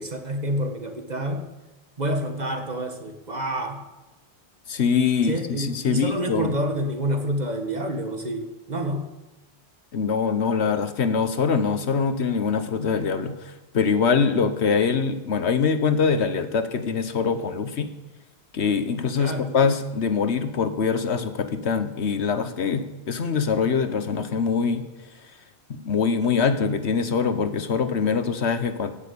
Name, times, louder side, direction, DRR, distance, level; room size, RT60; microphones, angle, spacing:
voice 1, 0.0-1.5 2.0-3.8 5.2-9.1 19.2-19.6, right 1 dB, 40° right, 5 dB, 1.8 m, -28 dB
voice 2, 4.7-6.5 9.9-17.9 18.5-24.8 25.7-28.9, left 5 dB, 85° left, 10 dB, 1.4 m, -23 dB
16.0 x 7.3 x 8.6 m, 1.1 s
omnidirectional pair, 1.1 m